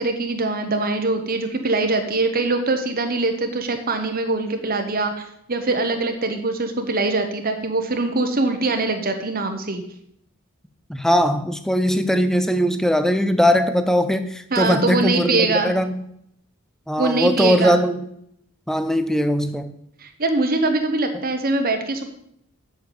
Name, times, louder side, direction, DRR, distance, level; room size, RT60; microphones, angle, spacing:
voice 1, 0.0-9.8 14.5-15.7 17.0-17.8 20.0-22.0, right 3 dB, 40° right, 5 dB, 1.1 m, -23 dB
voice 2, 10.9-16.0 16.9-18.0 18.7-19.7, equal, ahead, 10 dB, 0.7 m, -20 dB
8.0 x 7.1 x 8.6 m, 0.73 s
head